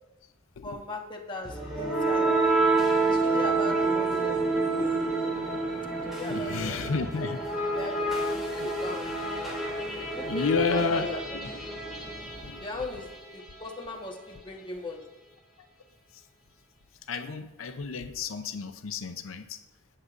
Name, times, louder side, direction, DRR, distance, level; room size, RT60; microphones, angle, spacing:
voice 1, 0.6-2.3 3.0-4.4 4.8-4.9 5.9-6.9 7.7-9.1 10.1-11.4 12.6-15.0, left 2 dB, 25° left, 0 dB, 1.2 m, -38 dB
sound 1, 1.4-13.3, right 3 dB, ahead, 2.7 m, -28 dB
voice 2, 6.3-7.4 8.6-8.7 10.2-11.5 12.4-12.6 17.1-19.6, left 4 dB, 85° left, 8 dB, 0.6 m, -31 dB
17.5 x 6.5 x 2.5 m, 1.0 s
head